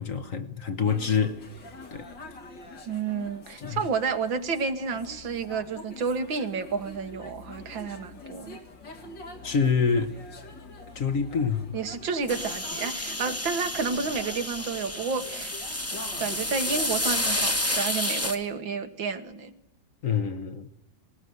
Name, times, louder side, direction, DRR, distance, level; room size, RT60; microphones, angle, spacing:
voice 1, 0.0-1.4 1.9-2.1 3.6-3.8 9.4-10.1 10.9-11.8 20.0-20.7, left 6 dB, 50° left, 1.4 m, -26 dB
sound 1, 0.8-17.8, left 2 dB, 70° left, 3.1 m, -45 dB
voice 2, 2.9-8.6 11.7-15.5 15.9-19.5, right 5 dB, 85° right, 2.3 m, -30 dB
sound 2, 12.3-18.4, left 1 dB, 10° left, 1.2 m, -30 dB
20.0 x 19.5 x 9.4 m
omnidirectional pair, 2.0 m